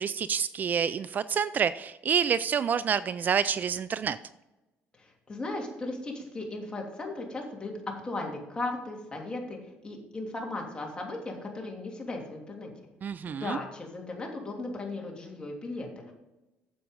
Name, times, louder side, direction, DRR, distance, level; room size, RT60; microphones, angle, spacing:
voice 1, 0.0-4.2 13.0-13.6, right 7 dB, 45° right, 16 dB, 0.3 m, -28 dB
voice 2, 5.0-7.7 8.0-12.7 13.3-16.1, left 2 dB, 20° left, 0 dB, 2.9 m, -37 dB
9.5 x 7.5 x 5.2 m, 1.0 s
cardioid pair, 95°, 4 cm